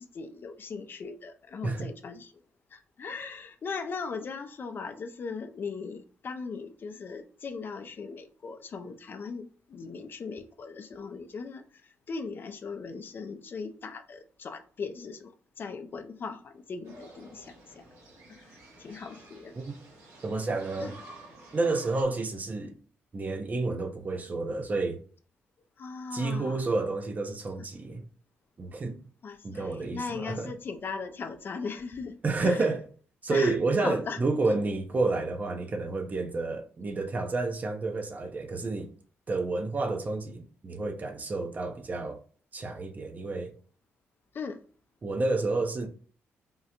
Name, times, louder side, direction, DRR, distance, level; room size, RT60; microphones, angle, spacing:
voice 1, 0.0-2.3 2.7-17.8 18.3-19.6 20.8-20.9 25.8-26.7 29.2-32.7 33.3-34.2 34.4-34.6 44.3-44.6, left 5 dB, 50° left, 0.4 m, -39 dB
sound 1, 16.8-22.0, right 2 dB, 80° right, 1.0 m, -51 dB
voice 2, 20.2-20.9 21.5-22.8 23.1-25.0 26.1-28.0 28.6-29.0 29.4-30.5 32.2-32.8 33.2-38.9 39.3-42.2 42.5-43.5 45.0-45.9, right 3 dB, 35° right, 0.5 m, -30 dB
3.6 x 2.0 x 2.8 m
cardioid pair, 80°, 5 cm